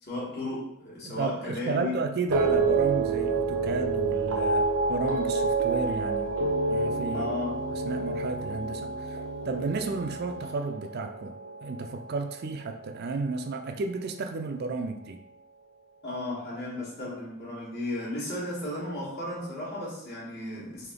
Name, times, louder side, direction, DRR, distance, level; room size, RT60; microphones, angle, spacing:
voice 1, 0.0-2.0 7.1-7.6 16.0-20.9, left 2 dB, 50° left, -6 dB, 1.4 m, -34 dB
voice 2, 1.0-6.3 6.7-7.3 7.7-11.3 11.6-15.2, right 4 dB, 45° right, 5 dB, 0.4 m, -32 dB
sound 1, 2.3-12.7 13.0-13.5, right 3 dB, 80° right, 0.7 m, -29 dB
3.4 x 2.8 x 3.7 m, 0.78 s
head